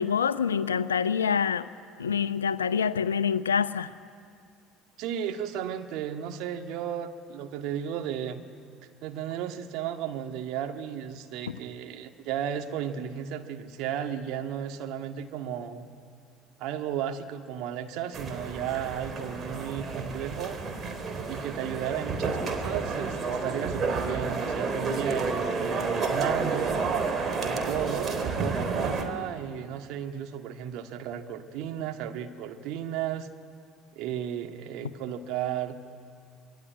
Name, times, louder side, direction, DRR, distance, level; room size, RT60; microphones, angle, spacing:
voice 1, 0.0-1.7 2.0-3.9 11.5-11.6, left 7 dB, 80° left, 15 dB, 0.7 m, -26 dB
voice 2, 5.0-8.4 9.0-15.9 16.6-20.6 21.2-26.8 27.4-33.3 34.0-35.8, right 9 dB, 60° right, 5 dB, 1.9 m, -34 dB
sound 1, 18.1-29.0, right 4 dB, 35° right, 3.7 m, -30 dB
26.5 x 21.0 x 9.6 m, 2.3 s
figure-of-eight pair, 60°, 0 cm